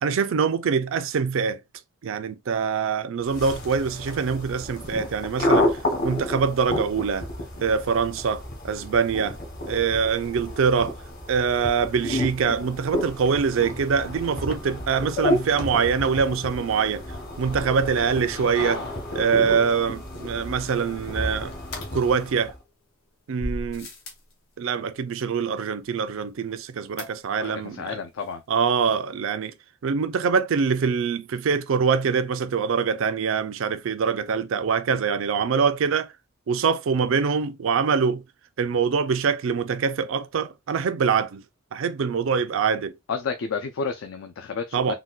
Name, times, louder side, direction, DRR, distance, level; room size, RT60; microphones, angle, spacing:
voice 1, 0.0-1.6 2.0-7.3 7.6-9.4 9.7-11.0 11.3-17.0 17.4-18.8 19.1-21.5 21.9-22.6 23.3-23.9 24.6-28.0 28.5-29.5 29.8-36.1 36.5-38.2 38.6-41.4 41.7-43.0 44.7-44.9, right 6 dB, 70° right, 0.4 m, -24 dB
sound 1, 3.3-22.6, left 1 dB, 50° left, 1.1 m, -31 dB
sound 2, 21.7-22.7 23.4-24.3 27.0-27.6 27.9-28.0 28.2-28.3, left 1 dB, 85° left, 1.0 m, -37 dB
voice 2, 27.4-28.4 43.1-44.9, left 5 dB, 70° left, 0.4 m, -31 dB
3.9 x 2.2 x 2.3 m
head